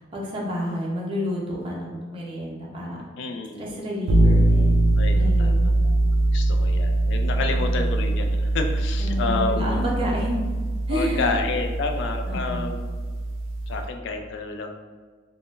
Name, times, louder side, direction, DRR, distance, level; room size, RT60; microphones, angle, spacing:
voice 1, 0.0-3.0 3.6-4.9 5.2-5.7 7.5-8.0 9.0-10.4 10.9-11.3 12.3-12.7, equal, 30° right, -4 dB, 0.6 m, -30 dB
voice 2, 3.2-3.9 5.0-9.8 10.9-12.9 13.7-14.7, left 3 dB, 65° left, 5 dB, 0.3 m, -30 dB
sound 1, 4.1-13.9, right 2 dB, 70° right, 0.3 m, -22 dB
3.6 x 2.1 x 2.4 m, 1.5 s
head